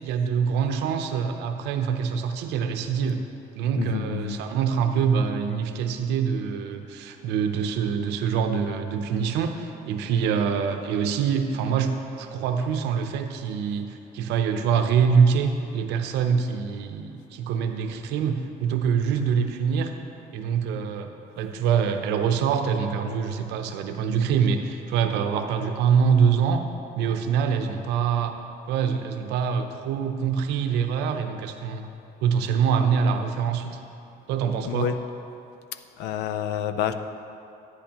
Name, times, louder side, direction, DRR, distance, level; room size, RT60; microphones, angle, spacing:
voice 1, 0.0-3.2 3.6-19.9 20.3-21.1 21.4-26.7 27.0-28.4 28.7-31.9 32.2-33.7 34.3-34.9, right 6 dB, 90° right, 6 dB, 0.7 m, -25 dB
voice 2, 3.7-4.4 34.6-35.0 35.7-36.9, left 10 dB, 85° left, 10 dB, 0.5 m, -28 dB
10.5 x 9.8 x 2.9 m, 2.7 s
cardioid pair, 110°, 17 cm